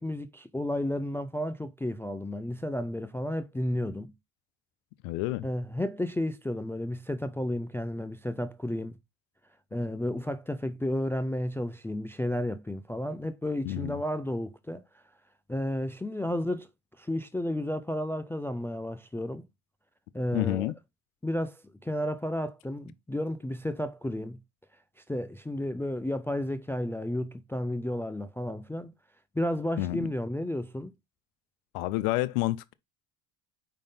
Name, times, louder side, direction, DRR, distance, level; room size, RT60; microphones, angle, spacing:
voice 1, 0.0-4.1 5.4-9.0 9.7-14.8 15.5-16.7 17.0-19.5 20.1-20.7 21.2-24.4 25.1-28.9 29.3-30.9, left 1 dB, 5° left, 0.3 m, -32 dB
voice 2, 5.0-5.5 13.6-14.0 20.3-20.7 29.8-30.1 31.7-32.7, left 17 dB, 80° left, 0.6 m, -29 dB
5.0 x 3.8 x 5.3 m
supercardioid pair, 85°, 42 cm